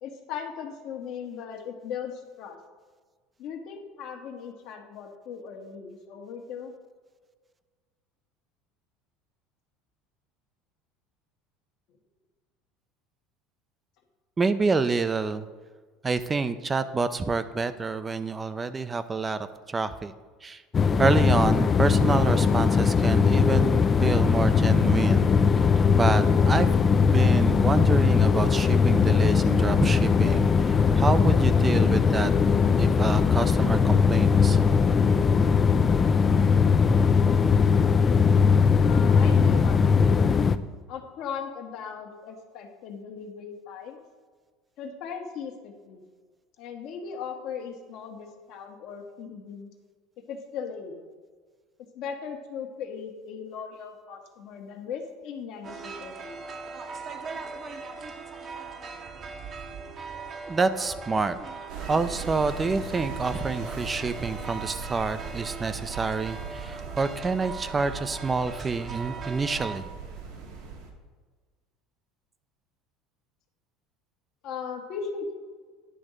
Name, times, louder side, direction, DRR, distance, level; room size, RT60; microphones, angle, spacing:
voice 1, 0.0-2.6 3.4-6.7 38.8-40.0 40.9-44.0 44.8-46.0 46.6-49.7 50.3-51.0 51.9-56.4 74.4-75.3, left 6 dB, 60° left, 3 dB, 1.3 m, -38 dB
voice 2, 14.4-15.5 16.0-19.4 19.7-20.1 20.4-20.6 21.0-25.3 25.9-26.7 27.1-32.3 32.8-34.6 60.5-61.4 61.9-69.9, right 4 dB, 25° right, 12 dB, 0.5 m, -27 dB
sound 1, 20.7-40.6, left 6 dB, 30° left, 0.4 m, -20 dB
sound 2, 55.6-69.8, right 4 dB, 40° right, 1.0 m, -40 dB
sound 3, 61.7-70.9, right 5 dB, 70° right, 1.5 m, -39 dB
10.0 x 3.6 x 6.5 m, 1.5 s
hypercardioid pair, 85°, 0 cm